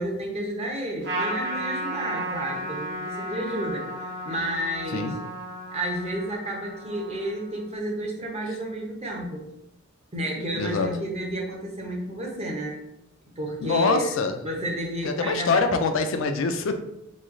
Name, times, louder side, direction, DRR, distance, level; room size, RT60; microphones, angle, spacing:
voice 1, 0.0-5.2 5.7-9.5 10.1-12.8 13.4-14.2 14.4-15.7, right 1 dB, 30° right, -1 dB, 0.8 m, -31 dB
Trumpet, 1.0-7.7, right 1 dB, 55° right, 1.0 m, -34 dB
voice 2, 10.5-11.0 13.6-14.4 15.0-16.8, left 4 dB, 65° left, 7 dB, 0.4 m, -24 dB
3.0 x 2.3 x 3.7 m, 0.85 s
head